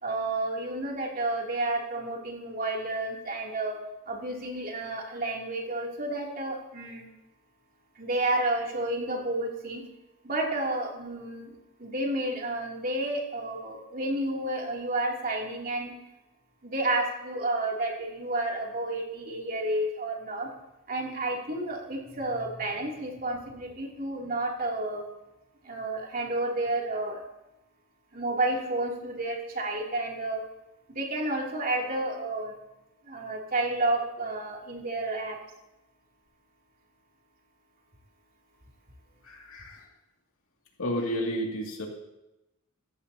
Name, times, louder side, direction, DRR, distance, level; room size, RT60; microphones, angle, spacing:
voice 1, 0.0-3.8 4.1-7.1 8.0-9.8 10.2-15.9 16.6-20.5 20.9-25.0 25.6-27.2 28.1-30.4 30.9-32.5 33.0-35.4, right 2 dB, 45° right, -1 dB, 2.9 m, -31 dB
voice 2, 39.2-39.8 40.8-41.9, equal, 85° left, 0 dB, 2.4 m, -31 dB
16.5 x 14.5 x 2.8 m, 0.96 s
head